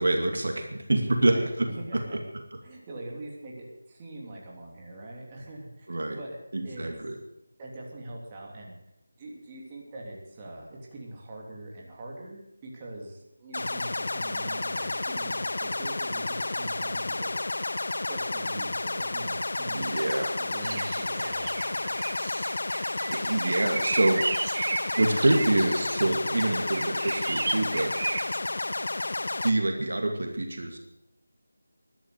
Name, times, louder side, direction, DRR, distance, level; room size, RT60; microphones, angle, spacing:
voice 1, 0.0-2.0 5.9-6.2 6.5-7.2 19.7-20.4 23.1-24.2 25.0-27.9 29.4-30.8, right 1 dB, 65° right, 3 dB, 2.4 m, -26 dB
voice 2, 1.1-1.4 1.7-2.2 2.6-5.9 6.2-6.9 7.6-8.8 9.2-17.7 18.1-19.8 20.4-21.9, right 1 dB, 20° right, -3 dB, 3.1 m, -42 dB
sound 1, 13.5-29.5, left 2 dB, 60° left, 1.0 m, -31 dB
sound 2, 20.6-28.4, right 3 dB, 45° right, 0.5 m, -34 dB
13.0 x 12.0 x 7.9 m, 0.84 s
figure-of-eight pair, 165°, 0 cm